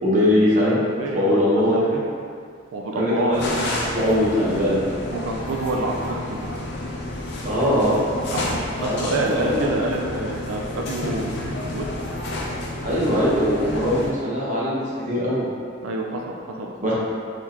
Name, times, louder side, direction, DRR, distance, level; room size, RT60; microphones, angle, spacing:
voice 1, 0.0-0.8 1.1-1.8 2.9-3.6 3.9-4.8 7.4-8.0 8.8-9.7 12.8-15.4 16.8-16.9, equal, 35° right, -8 dB, 0.9 m, -21 dB
voice 2, 1.0-2.1 2.7-3.8 5.1-6.4 8.3-11.4 11.7-11.9 15.8-16.9, right 2 dB, 85° right, 0 dB, 0.4 m, -28 dB
sound 1, 3.3-14.1, left 1 dB, 55° left, 0.5 m, -30 dB
3.8 x 3.2 x 2.9 m, 2.2 s
head